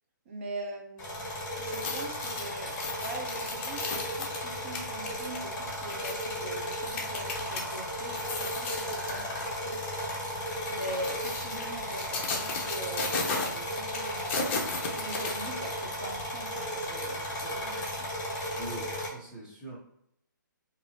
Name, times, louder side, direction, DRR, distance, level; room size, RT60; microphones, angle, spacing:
voice 1, 0.3-1.2 1.6-9.8 10.7-14.5 14.9-18.1, right 2 dB, 40° right, 1 dB, 0.7 m, -42 dB
sound 1, 1.0-19.1, equal, 25° left, 1.4 m, -35 dB
sound 2, 1.6-7.6 8.0-9.2 9.7-9.9 10.7-15.8 16.2-16.3, left 4 dB, 40° left, 0.6 m, -35 dB
voice 2, 18.6-19.8, right 2 dB, 10° right, -8 dB, 1.1 m, -42 dB
2.7 x 2.7 x 2.9 m, 0.76 s
hypercardioid pair, 140°, 11 cm